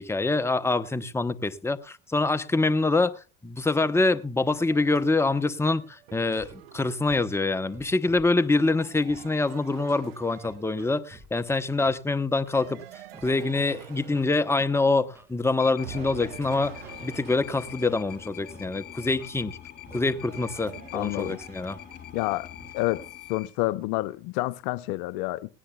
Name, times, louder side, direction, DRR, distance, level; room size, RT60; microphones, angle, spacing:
voice 1, 0.0-12.8 13.2-19.6 19.9-21.8, left 3 dB, 10° left, 0.9 m, -25 dB
sound 1, 3.8-11.2 12.5-15.4 15.8-22.3, right 11 dB, 85° right, 1.0 m, -48 dB
Scratching (performance technique), 6.4-6.6 7.1-7.2 7.7-8.6 9.1-9.2 9.8-9.9 10.4-11.3 11.8-11.9 12.5-12.7 13.1-13.3 13.8-14.6 15.2-15.3 15.8-16.0 16.5-17.3 17.9-18.0 18.5-18.6 18.9-19.3 19.9-20.0 20.5-20.6 21.2-21.4 21.9-22.0 22.6-22.7, right 2 dB, 10° right, 1.8 m, -51 dB
sound 2, 15.6-23.5, left 11 dB, 35° left, 4.5 m, -43 dB
voice 2, 20.9-21.4 22.1-22.5 22.7-23.0 23.3-25.5, left 19 dB, 70° left, 0.6 m, -28 dB
19.0 x 17.0 x 2.3 m
hypercardioid pair, 80°, 29 cm